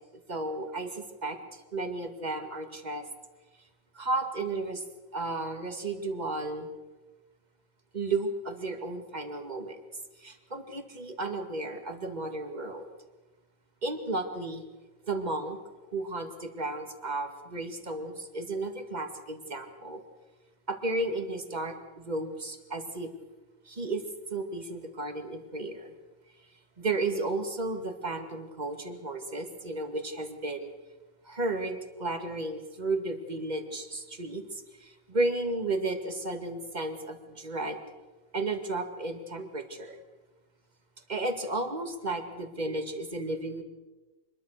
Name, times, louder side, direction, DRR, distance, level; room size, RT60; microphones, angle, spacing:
voice 1, 0.3-3.1 3.9-4.8 5.1-6.7 7.9-9.8 10.2-12.9 13.8-14.6 15.0-15.6 15.9-20.0 20.7-23.1 23.7-24.0 24.3-25.9 26.8-30.7 31.2-37.8 38.3-40.0 41.1-43.6, right 2 dB, 25° right, 6 dB, 2.2 m, -33 dB
26.0 x 21.5 x 6.6 m, 1.2 s
omnidirectional pair, 1.9 m